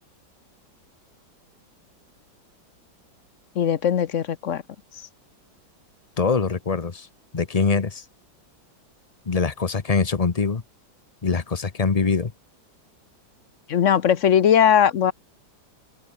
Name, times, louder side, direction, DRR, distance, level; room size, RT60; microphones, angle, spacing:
voice 1, 3.6-4.6 13.7-15.1, left 9 dB, 50° left, 1.0 m, -19 dB
voice 2, 6.2-7.1 7.3-8.0 9.3-10.6 11.2-12.3, left 5 dB, 30° left, 0.6 m, -23 dB
open air
omnidirectional pair, 2.1 m